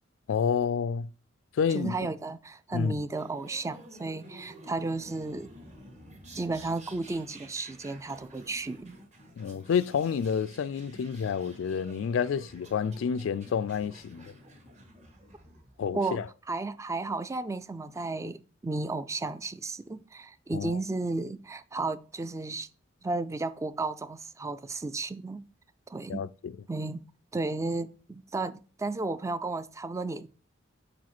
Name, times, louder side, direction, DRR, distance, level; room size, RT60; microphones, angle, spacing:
voice 1, 0.3-1.1 1.6-1.9 2.7-3.0 9.4-14.3 15.8-16.3 20.5-20.7 26.1-26.5, left 6 dB, 80° left, 0.3 m, -29 dB
voice 2, 1.7-5.5 6.3-9.0 15.9-22.7 23.0-25.4 25.9-26.2 26.7-27.0 27.3-30.3, right 3 dB, 15° right, 0.3 m, -33 dB
sound 1, 3.1-15.9, right 1 dB, 40° right, 1.6 m, -51 dB
4.9 x 4.9 x 5.9 m
head